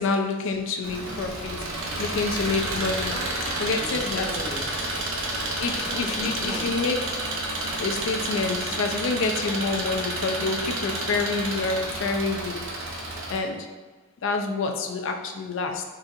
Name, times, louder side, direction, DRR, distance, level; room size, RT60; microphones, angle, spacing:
voice 1, 0.0-3.1 3.6-4.3 5.6-7.0 7.8-12.6 13.3-13.7 14.2-15.8, left 3 dB, 60° left, 5 dB, 0.4 m, -27 dB
Engine, 0.8-13.4, right 1 dB, 70° right, 0.6 m, -30 dB
voice 2, 3.1-6.9, equal, 20° right, -5 dB, 0.5 m, -40 dB
4.0 x 2.4 x 2.6 m, 1.4 s
head